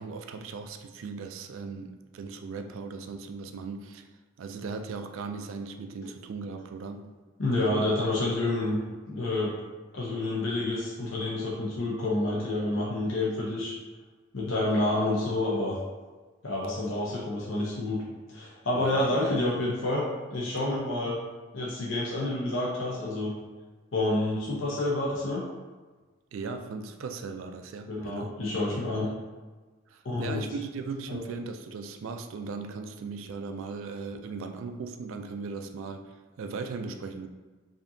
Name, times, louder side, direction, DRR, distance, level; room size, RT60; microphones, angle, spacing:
voice 1, 0.0-4.1 4.4-7.2 7.7-7.9 18.7-19.1 26.3-28.4 29.9-37.3, right 4 dB, 80° right, 6 dB, 0.3 m, -38 dB
voice 2, 7.4-8.8 9.1-9.5 9.9-13.7 14.3-15.8 16.4-18.0 18.3-20.0 20.3-21.2 21.5-23.3 23.9-25.4 27.9-29.1 30.0-30.4 31.1-31.2, left 2 dB, 70° left, -5 dB, 0.8 m, -28 dB
5.1 x 2.7 x 2.6 m, 1.3 s
head